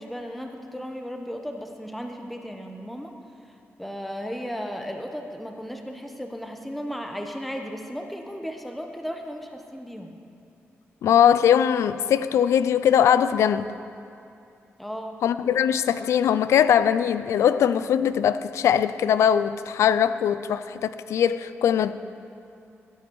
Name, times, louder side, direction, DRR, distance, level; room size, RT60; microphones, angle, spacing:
voice 1, 0.0-3.1 3.8-10.1 14.8-15.2, equal, ahead, 3 dB, 0.9 m, -35 dB
voice 2, 11.0-13.7 15.2-21.9, left 9 dB, 90° left, 14 dB, 0.4 m, -21 dB
15.5 x 8.2 x 4.7 m, 2.6 s
cardioid pair, 90°, 5 cm